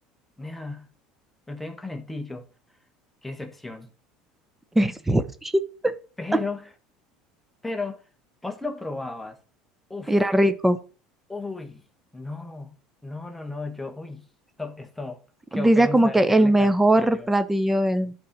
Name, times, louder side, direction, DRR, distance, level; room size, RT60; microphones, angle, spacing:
voice 1, 0.4-0.9 1.5-2.5 3.2-3.9 6.2-6.7 7.6-8.0 8.4-9.4 9.9-10.1 11.3-11.8 12.1-12.8 13.0-14.3 14.6-15.2 15.5-17.3, left 3 dB, 5° left, 1.5 m, -34 dB
voice 2, 4.7-5.9 10.1-10.8 15.5-18.1, right 1 dB, 10° right, 1.0 m, -20 dB
12.0 x 4.3 x 5.3 m
supercardioid pair, 105°, 2 cm